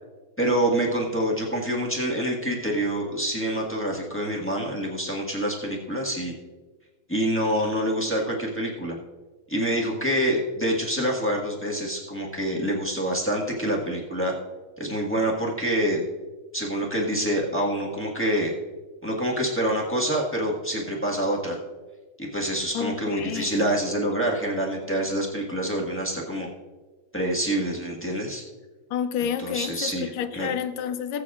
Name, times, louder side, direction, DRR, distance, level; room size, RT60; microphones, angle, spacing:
voice 1, 0.4-6.3 7.1-9.0 9.5-14.3 14.8-16.0 16.5-18.5 19.0-21.6 22.2-26.5 27.1-28.4 29.4-30.5, right 1 dB, 5° left, 1.1 m, -26 dB
voice 2, 22.7-23.7 28.9-31.2, left 8 dB, 75° left, 1.3 m, -30 dB
19.5 x 8.1 x 2.4 m
omnidirectional pair, 2.2 m